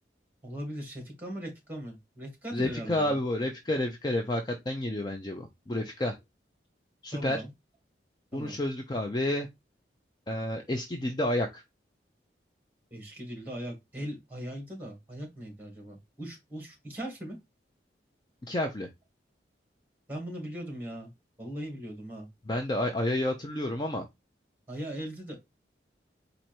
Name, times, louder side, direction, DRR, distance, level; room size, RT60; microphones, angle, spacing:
voice 1, 0.4-3.2 7.1-7.5 8.3-8.6 12.9-17.4 20.1-21.1 21.4-22.3 24.7-25.4, equal, 10° right, 2.2 m, -39 dB
voice 2, 2.5-6.2 7.0-7.4 8.3-9.5 10.3-11.6 18.5-18.9 22.5-24.1, left 1 dB, 25° left, 0.5 m, -30 dB
4.5 x 2.6 x 4.3 m
head